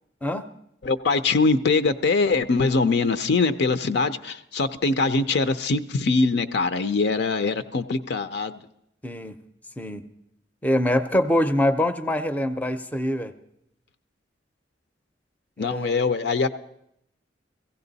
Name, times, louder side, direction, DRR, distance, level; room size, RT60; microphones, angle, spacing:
voice 1, 0.8-8.6 15.6-16.5, left 3 dB, 65° left, 11 dB, 0.5 m, -23 dB
voice 2, 9.0-9.3 9.8-10.0 10.6-13.3 15.6-16.0, left 1 dB, 10° left, 11 dB, 0.5 m, -24 dB
16.0 x 15.5 x 4.0 m, 0.77 s
head